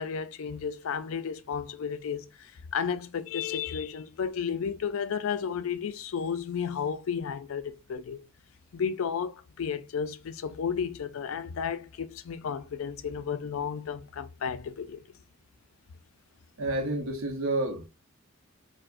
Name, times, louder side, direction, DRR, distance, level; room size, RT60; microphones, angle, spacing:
voice 1, 0.0-8.2 8.7-15.0, left 7 dB, 70° left, 0.4 m, -33 dB
voice 2, 16.6-17.9, right 2 dB, 70° right, 0.7 m, -29 dB
4.6 x 2.1 x 2.4 m
head